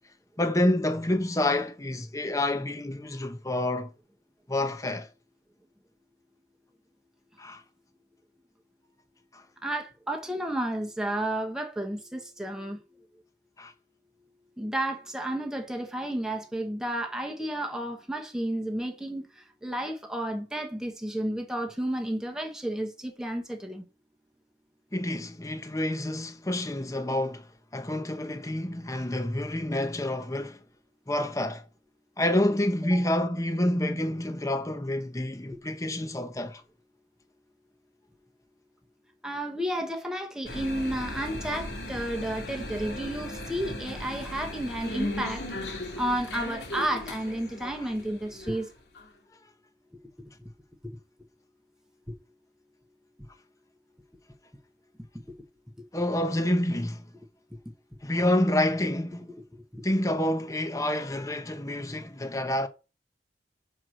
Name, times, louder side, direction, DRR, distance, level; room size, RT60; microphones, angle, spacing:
voice 1, 0.4-3.9 4.5-5.1 7.4-7.6 9.3-9.4 13.6-13.7 24.9-30.6 31.1-31.6 32.2-36.6 55.9-57.1 58.0-59.3 59.8-62.7, left 1 dB, 20° left, 0.8 m, -28 dB
voice 2, 9.6-13.1 14.6-23.8 32.9-33.0 39.2-45.5 45.7-48.7 50.2-50.5 50.8-51.0 55.8-55.9 59.5-59.8, right 1 dB, 5° right, 1.1 m, -32 dB
sound 1, 40.4-49.1, left 1 dB, 70° left, 2.0 m, -37 dB
6.1 x 4.8 x 6.3 m
head